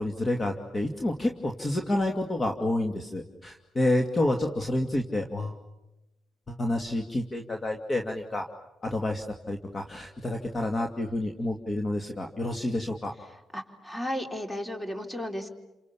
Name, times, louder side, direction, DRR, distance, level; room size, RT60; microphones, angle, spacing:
voice 1, 0.0-5.5 6.5-8.5 8.8-13.1, left 1 dB, 25° left, 2 dB, 2.4 m, -29 dB
voice 2, 13.5-15.5, left 1 dB, 10° left, 5 dB, 3.8 m, -34 dB
30.0 x 27.0 x 7.2 m, 0.98 s
cardioid pair, 90°, 0 cm